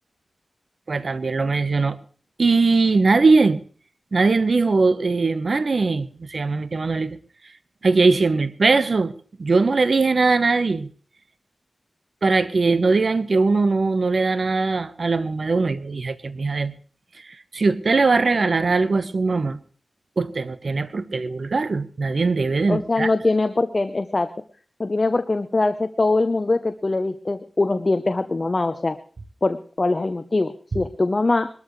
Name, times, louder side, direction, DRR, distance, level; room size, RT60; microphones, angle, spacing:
voice 1, 0.9-2.0 2.4-3.6 4.1-7.2 7.8-9.1 9.4-10.9 12.2-16.7 17.5-19.6 20.2-23.1, right 3 dB, 65° right, 1.0 m, -20 dB
voice 2, 22.7-24.3 24.8-29.0 29.4-31.5, left 2 dB, 40° left, 0.8 m, -22 dB
21.0 x 13.5 x 3.2 m
wide cardioid pair, 60°, 0 cm